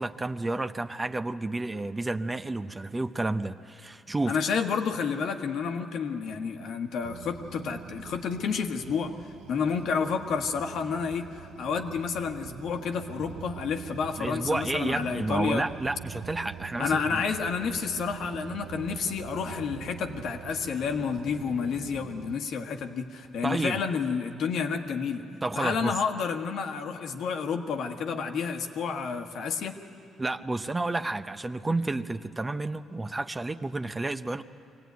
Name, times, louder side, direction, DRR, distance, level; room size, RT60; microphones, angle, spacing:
voice 1, 0.0-4.4 14.2-17.0 23.4-23.8 25.4-25.9 30.2-34.4, right 2 dB, 20° right, 10 dB, 0.6 m, -30 dB
voice 2, 4.3-9.1 9.5-15.6 16.8-25.2 25.5-29.7, left 6 dB, 75° left, 4 dB, 1.4 m, -30 dB
sound 1, 7.0-22.4, right 9 dB, 90° right, 0.5 m, -44 dB
23.5 x 17.0 x 9.4 m, 2.5 s
cardioid pair, 90°, 0 cm